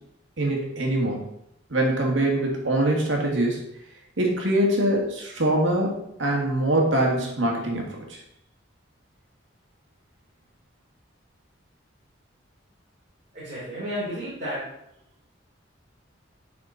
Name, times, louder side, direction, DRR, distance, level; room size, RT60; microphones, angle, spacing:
voice 1, 0.4-1.3 1.7-3.6 4.2-8.2, right 1 dB, 85° right, 0 dB, 1.8 m, -23 dB
voice 2, 13.3-14.6, equal, 45° right, -10 dB, 2.8 m, -32 dB
9.6 x 4.3 x 4.0 m, 0.80 s
head